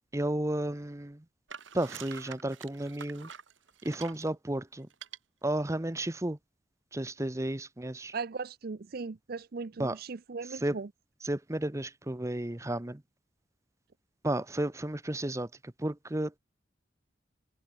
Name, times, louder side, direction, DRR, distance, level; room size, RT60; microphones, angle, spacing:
voice 1, 0.1-1.2 1.7-3.3 3.8-4.9 5.4-6.4 6.9-8.1 9.8-10.0 10.5-10.8 11.2-13.0 14.2-16.4, right 1 dB, 15° right, 0.8 m, -33 dB
sound 1, 1.5-4.3 4.9-5.2, right 7 dB, 90° right, 2.3 m, -46 dB
voice 2, 8.1-10.9, right 4 dB, 55° right, 0.5 m, -38 dB
head